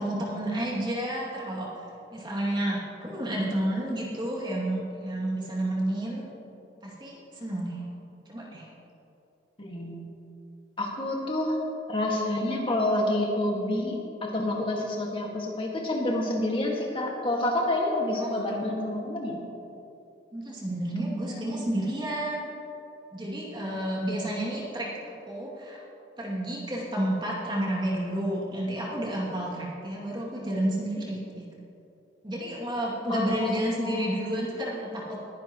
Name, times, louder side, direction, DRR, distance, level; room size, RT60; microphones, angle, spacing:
voice 1, 0.0-1.7 2.1-6.3 6.8-7.8 8.3-8.7 18.2-18.3 20.3-22.5 23.1-25.8 26.2-31.5 32.2-35.2, right 1 dB, 25° right, -5 dB, 2.5 m, -30 dB
voice 2, 9.6-10.1 10.8-11.6 11.9-19.4 21.3-21.4 33.1-34.1, left 1 dB, 30° left, -1 dB, 1.8 m, -28 dB
21.0 x 10.5 x 3.1 m, 2.8 s
head